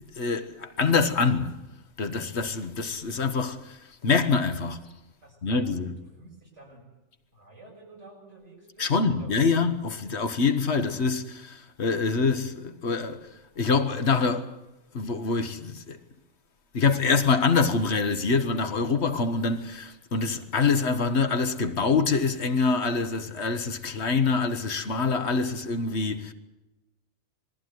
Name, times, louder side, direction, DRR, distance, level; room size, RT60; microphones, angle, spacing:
voice 1, 0.0-1.5 2.0-4.8 5.4-5.9 8.8-13.2 13.6-14.5 14.9-16.0 16.7-26.3, left 4 dB, 65° left, 1.5 m, -25 dB
voice 2, 5.2-5.7 6.0-6.8 7.3-9.4, right 2 dB, 80° right, 7.0 m, -50 dB
20.5 x 15.0 x 9.3 m
omnidirectional pair, 1.2 m